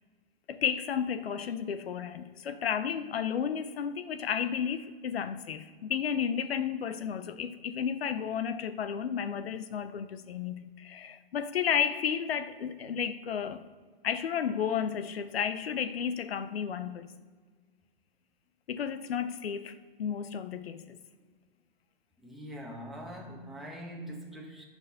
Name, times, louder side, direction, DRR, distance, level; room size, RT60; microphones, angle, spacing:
voice 1, 0.5-13.6 14.0-17.1 18.7-21.0, left 8 dB, 85° left, 0.8 m, -32 dB
voice 2, 22.2-24.7, equal, ahead, 1.6 m, -43 dB
10.0 x 6.3 x 5.7 m
hypercardioid pair, 140°, 30 cm